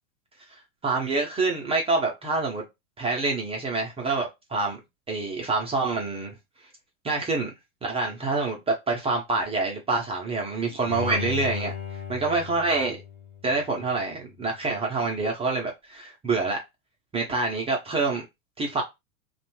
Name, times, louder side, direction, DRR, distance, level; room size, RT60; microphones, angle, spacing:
voice 1, 0.8-2.6 3.0-4.8 5.1-6.3 7.0-7.5 7.8-11.7 12.1-13.0 13.4-16.6 17.1-18.2 18.6-18.8, right 3 dB, 15° right, 0.4 m, -26 dB
Bowed string instrument, 10.9-14.0 14.4-14.5, left 6 dB, 15° left, 0.8 m, -36 dB
2.6 x 2.2 x 2.9 m
hypercardioid pair, 100°, 43 cm